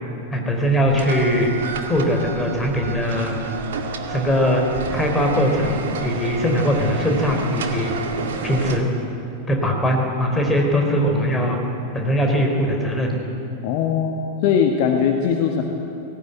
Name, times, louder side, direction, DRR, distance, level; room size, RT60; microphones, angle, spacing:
voice 1, 0.3-1.5 1.9-3.3 4.1-4.6 4.9-7.9 8.4-8.8 9.5-11.6 11.9-13.2, equal, 15° left, 2 dB, 4.1 m, -20 dB
sound 1, 0.5-8.8, right 6 dB, 60° right, 2.0 m, -30 dB
voice 2, 13.6-15.6, left 7 dB, 45° left, 3 dB, 1.6 m, -20 dB
18.0 x 17.5 x 9.4 m, 3.0 s
figure-of-eight pair, 90°, 0 cm